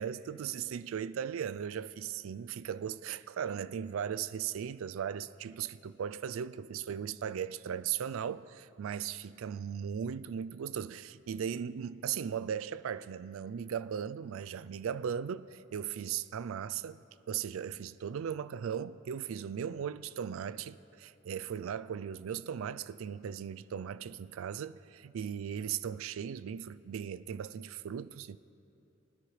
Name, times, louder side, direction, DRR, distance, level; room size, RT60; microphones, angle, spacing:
voice 1, 0.0-28.4, right 8 dB, 85° right, 0.4 m, -37 dB
23.5 x 9.8 x 3.2 m
head